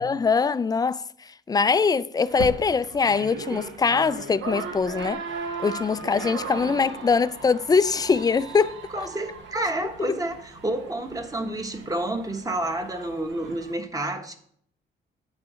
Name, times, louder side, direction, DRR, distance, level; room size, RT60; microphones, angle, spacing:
voice 1, 0.0-5.2 5.6-9.1 10.0-10.2, left 5 dB, 20° left, 0.3 m, -23 dB
sound 1, 2.3-13.7, right 4 dB, 70° right, 1.1 m, -37 dB
voice 2, 8.9-14.4, right 1 dB, 15° right, 1.1 m, -29 dB
9.5 x 4.0 x 6.3 m
cardioid pair, 90°, 20 cm